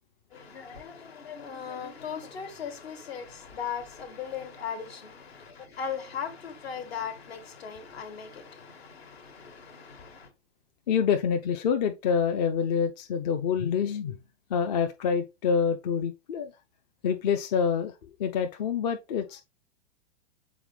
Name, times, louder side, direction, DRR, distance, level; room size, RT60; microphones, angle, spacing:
voice 1, 0.3-10.3, left 7 dB, 60° left, 1.7 m, -38 dB
voice 2, 10.9-14.2 14.5-16.5 17.0-17.9 18.2-19.4, left 6 dB, 35° left, 0.6 m, -26 dB
7.1 x 4.2 x 3.3 m
figure-of-eight pair, 105°, 35 cm